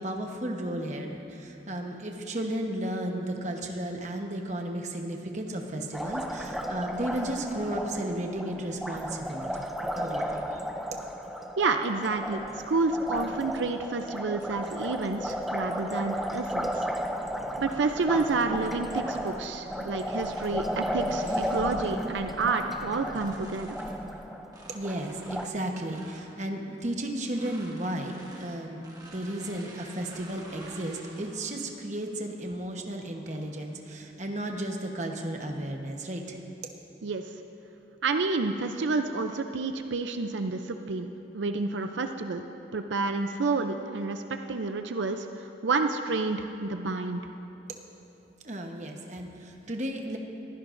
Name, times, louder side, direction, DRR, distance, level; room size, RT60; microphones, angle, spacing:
voice 1, 0.0-10.6 24.7-36.4 48.4-50.2, right 1 dB, 40° right, 2 dB, 1.1 m, -34 dB
Liquid, 5.9-25.5, equal, ahead, 0.5 m, -34 dB
voice 2, 11.6-16.9 17.6-23.8 37.0-37.3 38.0-41.1 41.3-44.2 44.5-47.2, right 3 dB, 85° right, 6 dB, 0.5 m, -29 dB
sound 1, 20.1-21.8 22.4-24.0 24.4-26.3 27.2-31.7 32.1-32.4 33.1-33.6, right 1 dB, 20° right, 1.5 m, -51 dB
22.5 x 15.5 x 2.6 m, 2.9 s
head